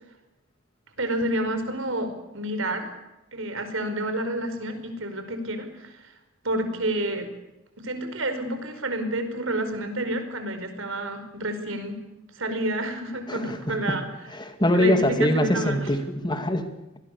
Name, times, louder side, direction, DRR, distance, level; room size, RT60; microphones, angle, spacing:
voice 1, 1.0-2.9 3.3-6.0 6.4-7.3 7.8-12.0 12.3-14.1 14.7-15.9, right 1 dB, 75° right, 8 dB, 5.0 m, -29 dB
voice 2, 13.3-14.0 14.3-16.7, left 1 dB, 25° left, 7 dB, 2.5 m, -24 dB
26.5 x 20.5 x 6.9 m, 1.0 s
head